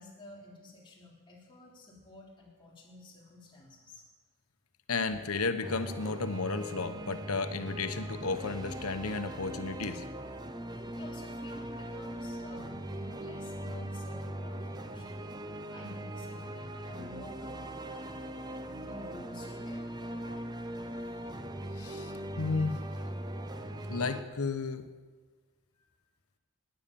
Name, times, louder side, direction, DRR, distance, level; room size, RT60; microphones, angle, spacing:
voice 1, 0.0-4.1 11.0-15.2 15.7-20.8 25.8-26.0, left 2 dB, 20° left, -4 dB, 3.9 m, -52 dB
voice 2, 4.9-10.0 16.8-16.9 21.8-22.1 22.4-22.7 23.9-24.9, left 4 dB, 85° left, 9 dB, 1.1 m, -33 dB
sound 1, 5.6-24.2, right 1 dB, 20° right, 0.7 m, -40 dB
18.0 x 10.0 x 7.0 m, 1.4 s
head